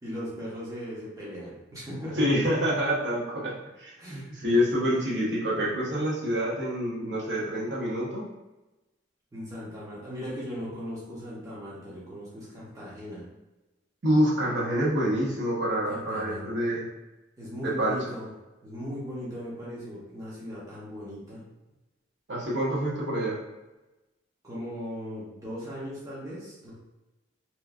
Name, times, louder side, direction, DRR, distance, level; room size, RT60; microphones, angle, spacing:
voice 1, 0.0-2.4 4.0-4.6 9.3-13.3 15.8-16.8 17.4-18.3 18.6-21.4 24.4-26.7, equal, 15° right, -7 dB, 0.6 m, -38 dB
voice 2, 2.2-3.5 3.8-8.2 14.0-16.9 17.6-18.0 22.3-23.4, equal, 65° right, -5 dB, 0.8 m, -27 dB
3.0 x 2.4 x 2.3 m, 1.1 s
head